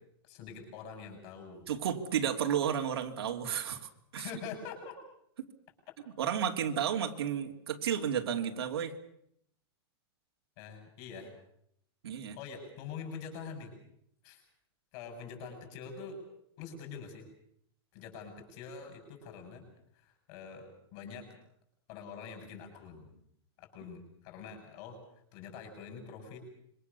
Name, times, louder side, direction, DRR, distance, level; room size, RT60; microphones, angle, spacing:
voice 1, 0.2-1.7 4.2-5.0 5.9-6.0 10.6-11.3 12.4-13.7 14.2-14.4 14.9-16.2 16.6-17.3 17.9-19.6 19.9-21.2 21.9-23.1 23.6-25.0 25.3-26.4, left 6 dB, 30° left, 4 dB, 7.1 m, -45 dB
voice 2, 1.7-4.3 6.2-8.9 12.0-12.4, right 8 dB, 70° right, 4 dB, 2.9 m, -32 dB
26.5 x 24.0 x 7.0 m, 0.73 s
supercardioid pair, 180°, 14 cm